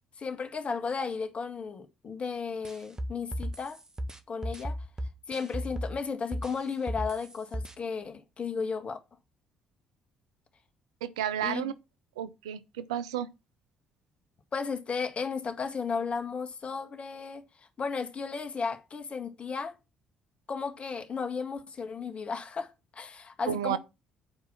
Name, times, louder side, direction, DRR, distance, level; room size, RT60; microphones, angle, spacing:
voice 1, 0.2-3.8 4.3-4.8 5.3-9.0 11.4-11.7 14.5-17.4 17.8-19.7 20.5-23.8, left 5 dB, 40° left, 1.8 m, -34 dB
sound 1, 2.6-6.0 6.3-7.7, equal, 20° right, 1.4 m, -35 dB
voice 2, 11.0-11.7 12.2-13.3 23.5-23.8, right 10 dB, 80° right, 0.5 m, -32 dB
8.9 x 4.8 x 5.8 m
hypercardioid pair, 50°, 3 cm